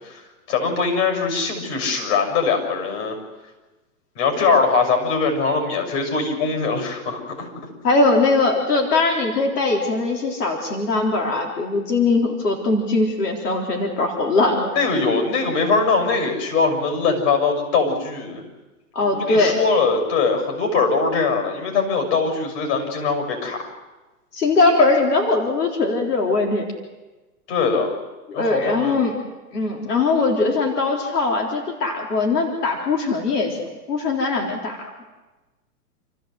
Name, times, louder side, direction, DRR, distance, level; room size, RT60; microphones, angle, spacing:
voice 1, 0.0-3.2 4.1-7.5 14.7-18.4 19.1-23.6 27.5-27.9 28.3-29.0, left 4 dB, 45° left, 4 dB, 6.6 m, -21 dB
voice 2, 7.8-14.7 18.9-19.6 24.3-26.7 28.3-29.1 29.5-33.6 33.9-34.8, left 3 dB, 85° left, 1 dB, 3.9 m, -20 dB
29.0 x 14.5 x 7.9 m, 1.2 s
hypercardioid pair, 145°, 46 cm